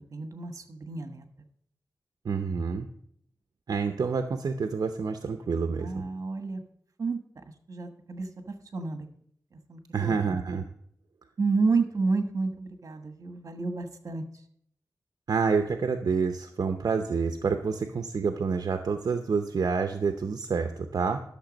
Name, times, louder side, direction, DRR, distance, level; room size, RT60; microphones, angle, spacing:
voice 1, 0.1-1.2 5.8-6.6 7.0-9.1 9.5-10.4 11.4-14.2, right 4 dB, 55° right, 7 dB, 1.3 m, -31 dB
voice 2, 2.2-2.9 3.7-6.0 9.9-10.6 15.3-21.2, right 5 dB, 70° right, 7 dB, 0.7 m, -28 dB
12.0 x 6.8 x 5.1 m, 0.67 s
wide cardioid pair, 110°, 7 cm